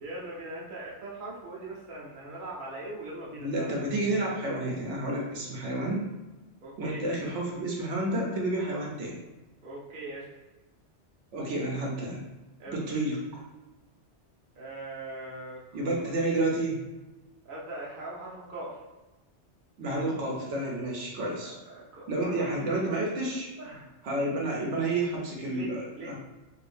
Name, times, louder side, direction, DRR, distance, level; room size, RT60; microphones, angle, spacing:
voice 1, 0.0-3.7 6.6-7.0 9.6-10.2 12.6-12.8 14.6-16.2 17.4-18.8 21.4-22.5 22.7-22.9 23.6-23.9 25.4-26.2, right 2 dB, 50° right, -4 dB, 0.8 m, -41 dB
voice 2, 3.4-6.1 6.8-9.2 11.3-12.3 12.7-13.4 15.7-16.8 19.8-21.5 22.1-23.5 24.0-26.2, right 2 dB, 75° right, -2 dB, 1.0 m, -30 dB
2.7 x 2.6 x 3.3 m, 1.1 s
omnidirectional pair, 1.2 m